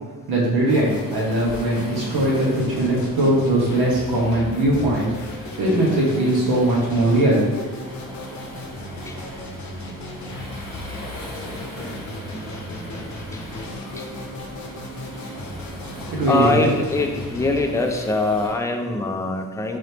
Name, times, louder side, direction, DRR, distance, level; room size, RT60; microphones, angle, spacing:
voice 1, 0.3-7.6 16.1-16.7, right 1 dB, 80° right, -5 dB, 1.3 m, -20 dB
sound 1, 0.6-17.6, left 2 dB, 50° left, 0.7 m, -36 dB
Waves surf, 0.7-18.5, equal, 15° right, 1.4 m, -39 dB
voice 2, 16.3-19.8, left 2 dB, 10° left, 3 dB, 0.3 m, -23 dB
3.9 x 3.3 x 2.8 m, 1.3 s
cardioid pair, 100°, 37 cm